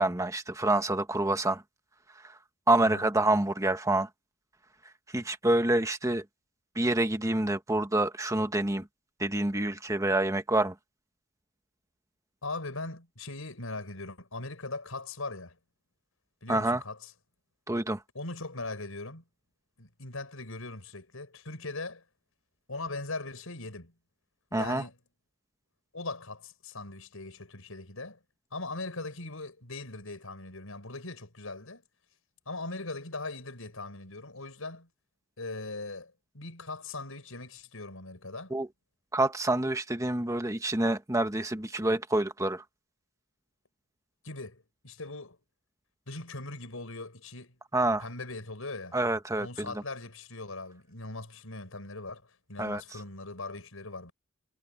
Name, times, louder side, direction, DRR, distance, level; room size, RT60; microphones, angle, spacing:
voice 1, 0.0-1.6 2.2-2.4 2.7-4.1 5.1-6.2 6.7-8.9 9.2-10.7 16.5-16.8 17.7-18.0 24.5-24.8 38.5-38.7 39.1-42.6 47.7-48.0 48.9-49.8 52.6-52.8, right 2 dB, 15° right, 1.4 m, -27 dB
voice 2, 12.4-15.6 16.4-17.1 18.1-19.2 19.8-22.0 22.7-23.9 24.5-24.9 25.9-28.2 28.5-31.8 32.4-34.9 35.4-38.5 44.2-45.4 46.1-47.6 48.0-49.0 49.4-52.2 52.5-54.1, left 2 dB, 85° left, 5.1 m, -40 dB
head